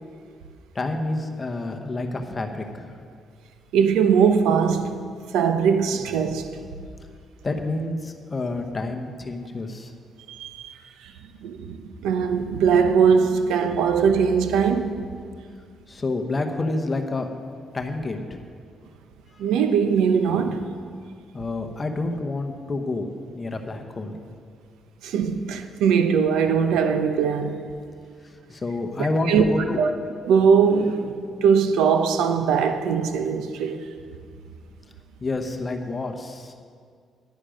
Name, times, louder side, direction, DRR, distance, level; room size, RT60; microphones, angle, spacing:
voice 1, 0.7-3.0 7.4-9.9 15.9-17.3 17.7-18.4 19.3-19.4 21.3-23.1 23.3-24.2 28.5-29.8 35.2-36.5, left 2 dB, 30° left, 0.9 m, -28 dB
voice 2, 3.7-5.0 5.3-6.5 10.3-10.7 11.0-11.1 11.4-15.0 19.4-20.6 25.0-27.7 29.0-29.5 29.8-29.9 30.2-31.1 31.4-33.8, right 6 dB, 90° right, 0.7 m, -21 dB
10.5 x 9.7 x 5.1 m
cardioid pair, 90°, 0 cm